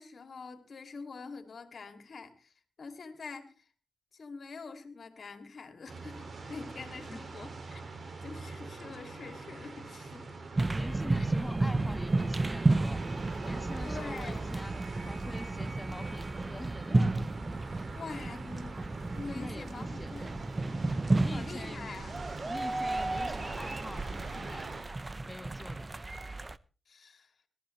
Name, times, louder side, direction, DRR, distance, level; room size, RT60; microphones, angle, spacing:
voice 1, 0.0-3.5 4.1-7.8 8.2-10.3 13.8-14.6 17.7-20.3 21.3-22.2 26.9-27.3, left 4 dB, 65° left, 2.7 m, -45 dB
sound 1, 5.9-24.8, right 3 dB, 55° right, 2.7 m, -44 dB
sound 2, 10.6-26.6, right 2 dB, 35° right, 0.8 m, -32 dB
voice 2, 10.7-13.0 13.4-14.7 15.1-17.3 19.3-20.2 21.2-24.7 25.2-25.9, left 1 dB, 20° left, 1.4 m, -45 dB
22.0 x 13.5 x 3.3 m
supercardioid pair, 40°, 0 cm